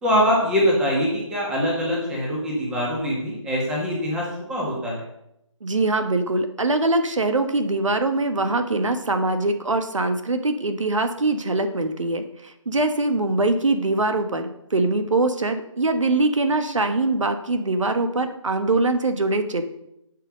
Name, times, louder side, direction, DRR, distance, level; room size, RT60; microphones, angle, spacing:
voice 1, 0.0-5.0, equal, 5° right, -3 dB, 1.9 m, -23 dB
voice 2, 5.6-19.7, right 2 dB, 70° right, 8 dB, 1.3 m, -23 dB
11.0 x 5.9 x 6.5 m, 0.81 s
figure-of-eight pair, 165°, 17 cm